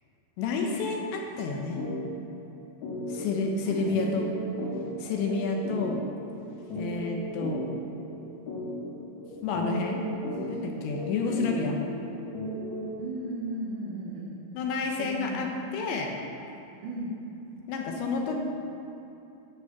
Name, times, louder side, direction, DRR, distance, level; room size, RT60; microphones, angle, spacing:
voice 1, 0.4-1.8 3.1-4.3 5.0-6.0 6.7-7.6 9.4-10.0 10.5-11.8 14.5-16.1 17.7-18.4, left 4 dB, 75° left, 1 dB, 3.1 m, -30 dB
sound 1, 1.8-2.0 2.3-2.4 2.8-13.1, equal, 50° left, 2.9 m, -36 dB
voice 2, 3.6-4.2 10.4-12.3 13.0-14.4 15.0-15.4 16.8-17.2, right 1 dB, 75° right, -5 dB, 1.9 m, -37 dB
11.0 x 6.9 x 7.1 m, 2.9 s
omnidirectional pair, 5.6 m